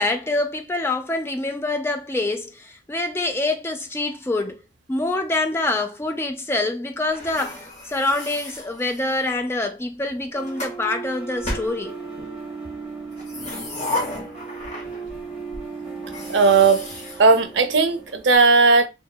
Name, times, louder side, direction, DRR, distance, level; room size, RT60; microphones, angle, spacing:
voice 1, 0.0-4.6 4.9-12.0, left 2 dB, 15° left, 0.4 m, -25 dB
sound 1, 7.1-9.4 10.1-10.8 11.4-12.4 13.1-15.2 15.5-15.6 16.0-18.1, left 2 dB, 40° left, 1.0 m, -34 dB
sound 2, 10.3-18.3, right 4 dB, ahead, 1.3 m, -36 dB
voice 2, 16.3-16.9 17.2-18.9, right 4 dB, 70° right, 0.5 m, -16 dB
2.9 x 2.1 x 2.2 m
head